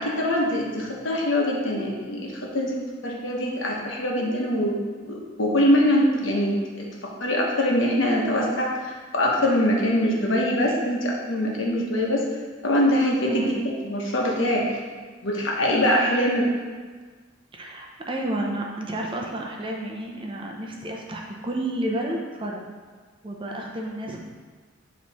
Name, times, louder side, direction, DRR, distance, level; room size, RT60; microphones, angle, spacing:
voice 1, 0.0-6.6 7.0-12.2 12.6-13.5 13.8-14.7 15.2-16.5, left 1 dB, 75° left, -2 dB, 1.1 m, -23 dB
voice 2, 13.3-13.6 17.5-22.6 23.2-24.2, right 1 dB, 25° right, 0 dB, 0.6 m, -31 dB
8.1 x 3.1 x 4.1 m, 1.5 s
head